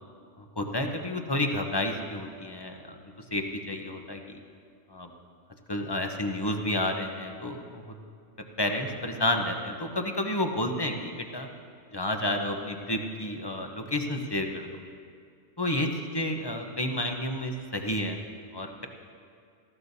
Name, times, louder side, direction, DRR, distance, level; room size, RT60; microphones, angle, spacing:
voice 1, 0.4-3.0 3.3-4.2 4.9-5.1 5.7-7.9 8.6-11.5 11.9-14.7 15.6-18.2 18.5-18.9, left 1 dB, 25° left, 3 dB, 0.7 m, -30 dB
18.5 x 15.0 x 2.7 m, 2.3 s
omnidirectional pair, 1.2 m